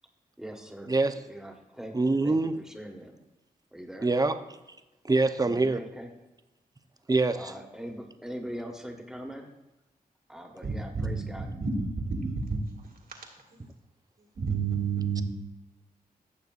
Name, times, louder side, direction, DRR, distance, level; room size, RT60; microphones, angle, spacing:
voice 1, 0.4-0.9 1.3-3.1 3.7-4.1 5.4-6.1 7.3-9.5 10.3-11.5, equal, 5° right, 3 dB, 1.5 m, -41 dB
voice 2, 0.9-1.2 1.9-2.5 4.0-4.4 5.0-5.8 7.1-7.5, right 3 dB, 25° right, 9 dB, 0.7 m, -24 dB
voice 3, 10.6-12.6 13.1-13.6 14.4-15.2, right 5 dB, 65° right, 0 dB, 2.1 m, -31 dB
15.0 x 6.7 x 2.5 m, 1.0 s
cardioid pair, 65°, 16 cm